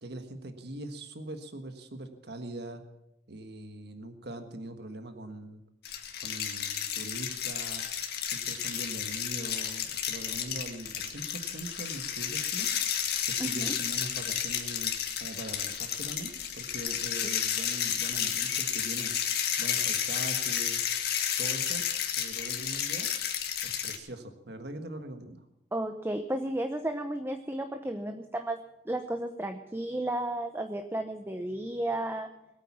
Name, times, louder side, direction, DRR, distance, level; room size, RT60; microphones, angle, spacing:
voice 1, 0.0-2.8 3.3-5.6 6.2-7.8 8.2-12.7 13.2-19.1 19.6-20.8 21.4-21.9 22.2-23.1 23.6-25.4, right 1 dB, 65° right, 7 dB, 1.5 m, -42 dB
sound 1, 5.9-24.0, left 9 dB, 60° left, 1.9 m, -32 dB
voice 2, 13.4-13.7 25.7-32.3, right 1 dB, 15° right, 6 dB, 0.8 m, -33 dB
21.0 x 9.1 x 7.3 m, 0.87 s
head